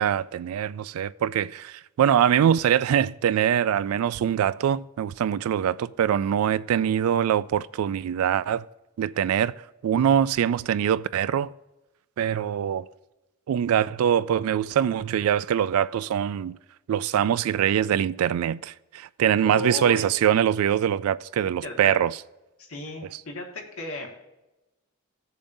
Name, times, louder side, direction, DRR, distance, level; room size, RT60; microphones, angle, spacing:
voice 1, 0.0-8.6 9.0-9.5 9.8-11.5 12.2-12.9 13.5-16.6 16.9-22.2, right 9 dB, 85° right, 0.3 m, -23 dB
voice 2, 19.4-20.1 21.6-22.0 22.6-24.1, left 3 dB, 75° left, 1.7 m, -35 dB
16.0 x 6.9 x 2.7 m
head